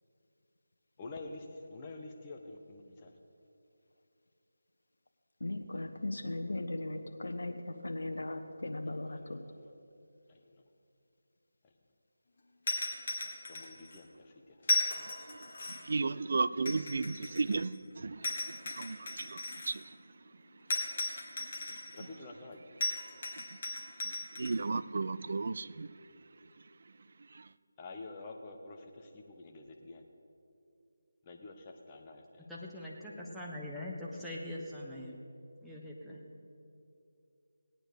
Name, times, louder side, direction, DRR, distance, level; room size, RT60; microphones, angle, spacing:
voice 1, 1.0-1.5 1.7-3.1 8.8-9.5 10.3-10.6 13.5-14.3 14.8-15.1 22.0-22.6 27.8-30.0 31.3-32.5, left 3 dB, 20° left, 2 dB, 1.2 m, -48 dB
voice 2, 5.4-9.4, left 2 dB, 70° left, 5 dB, 1.2 m, -38 dB
sound 1, 12.7-14.0 14.6-16.0 16.6-17.8 18.2-19.8 20.7-22.0 22.8-24.6, left 3 dB, 40° left, 1.8 m, -36 dB
voice 3, 15.3-20.0 20.9-22.1 23.4-26.1 27.2-27.5, right 4 dB, 50° right, 15 dB, 0.4 m, -36 dB
voice 4, 32.5-35.2 35.6-36.2, left 1 dB, ahead, -7 dB, 1.3 m, -42 dB
18.5 x 9.0 x 5.2 m, 2.6 s
figure-of-eight pair, 160°, 0 cm